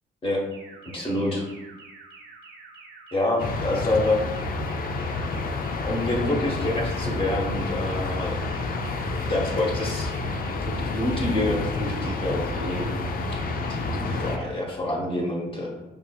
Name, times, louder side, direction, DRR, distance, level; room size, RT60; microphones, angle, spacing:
sound 1, 0.5-10.5 10.9-11.3 11.7-12.1 12.5-12.9 13.3-13.7 14.1-14.5, right 4 dB, 60° right, 1.0 m, -47 dB
voice 1, 0.9-1.4 3.1-4.4 5.8-8.4 8.7-8.8 9.2-13.1 13.6-15.7, left 1 dB, 25° left, -2 dB, 1.0 m, -27 dB
sound 2, 3.4-14.4, left 3 dB, 45° left, 0.4 m, -29 dB
5.3 x 2.8 x 2.3 m, 1.0 s
cardioid pair, 90°, 20 cm